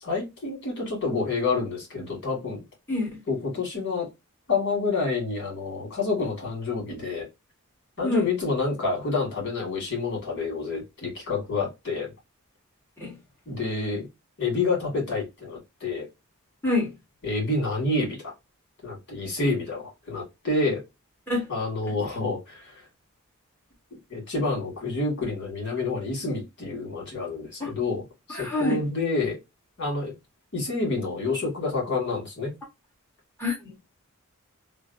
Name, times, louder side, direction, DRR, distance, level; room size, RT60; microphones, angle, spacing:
voice 1, 0.0-2.6 3.3-4.1 4.5-7.3 8.0-12.1 13.5-14.1 14.4-16.1 17.2-18.3 18.8-20.8 21.5-22.9 24.1-28.0 28.3-29.4 29.8-30.1 30.5-32.5, left 3 dB, 50° left, 1.9 m, -28 dB
voice 2, 2.9-3.2 8.0-8.2 13.0-13.2 16.6-16.9 21.3-21.5 21.9-22.0 27.6-27.7 28.3-28.8 33.4-33.7, left 2 dB, 10° left, 1.3 m, -27 dB
3.2 x 2.0 x 2.5 m
head